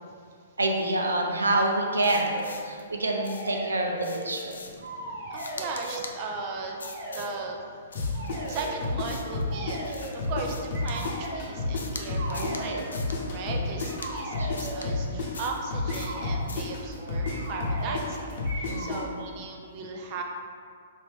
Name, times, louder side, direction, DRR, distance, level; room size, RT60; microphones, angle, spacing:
voice 1, 0.6-4.6 12.3-12.8 13.5-13.6 14.4-14.5 18.7-19.1, right 2 dB, 85° right, 1 dB, 0.6 m, -27 dB
sound 1, 1.7-2.6 3.0-4.5 4.8-6.1 6.8-7.3 8.1-8.8 9.5-10.2 10.7-11.5 12.0-13.0 13.8-15.0 15.9-16.4 17.2-18.1 18.4-19.1, right 1 dB, 60° right, 1.2 m, -38 dB
sound 2, 2.0-2.8 3.2-3.6 4.0-4.9 5.3-6.2 6.8-7.3 7.9-9.4 9.9-11.3 11.7-12.0 12.3-12.6 12.9-13.2 13.8-14.1 14.6-14.9 15.3-15.6 15.9-16.2 16.5-16.7, left 4 dB, 80° left, 0.4 m, -42 dB
voice 2, 4.7-7.7 8.3-12.8 13.1-20.2, right 4 dB, 40° right, 1 dB, 0.5 m, -37 dB
sound 3, 8.0-10.5 10.7-14.6 14.8-19.0, left 3 dB, 55° left, 1.0 m, -30 dB
5.2 x 2.7 x 3.5 m, 2.2 s
hypercardioid pair, 120°, 0 cm